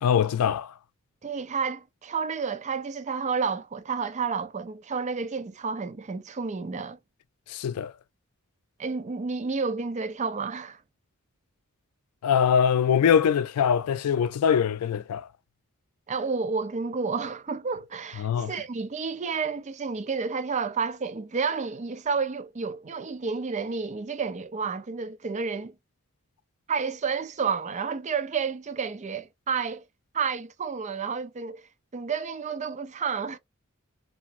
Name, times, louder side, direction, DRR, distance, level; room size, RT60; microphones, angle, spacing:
voice 1, 0.0-0.7 7.5-7.9 12.2-15.3 18.2-18.5, left 7 dB, 85° left, 0.3 m, -23 dB
voice 2, 1.2-7.0 8.8-10.8 16.1-25.7 26.7-29.8 30.1-31.6 31.9-33.4, right 5 dB, 30° right, 0.4 m, -30 dB
2.8 x 2.4 x 2.5 m
head